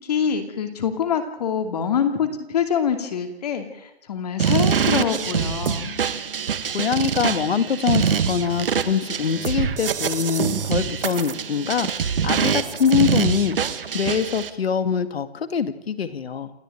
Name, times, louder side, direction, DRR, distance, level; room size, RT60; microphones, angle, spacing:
voice 1, 0.0-6.0, left 7 dB, 40° left, 6 dB, 2.6 m, -25 dB
sound 1, 4.4-14.5, right 7 dB, 60° right, 1.9 m, -24 dB
voice 2, 6.7-13.6 13.9-16.5, left 7 dB, 70° left, 11 dB, 2.1 m, -24 dB
28.0 x 13.5 x 9.1 m, 0.93 s
hypercardioid pair, 175°, 32 cm